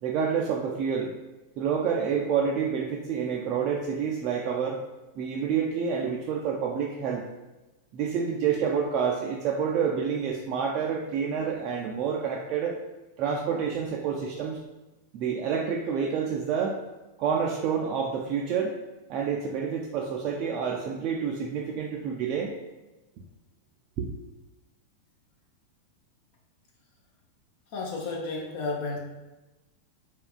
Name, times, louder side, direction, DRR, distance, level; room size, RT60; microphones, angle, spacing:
voice 1, 0.0-1.1 1.6-4.8 5.2-7.2 7.9-12.8 13.2-14.6 15.1-16.8 17.2-18.8 19.1-22.5 24.0-24.1, right 6 dB, 40° right, -1 dB, 0.3 m, -28 dB
voice 2, 27.7-29.0, left 3 dB, 50° left, -1 dB, 0.5 m, -32 dB
3.4 x 2.4 x 2.3 m, 1.1 s
figure-of-eight pair, 90°, 0 cm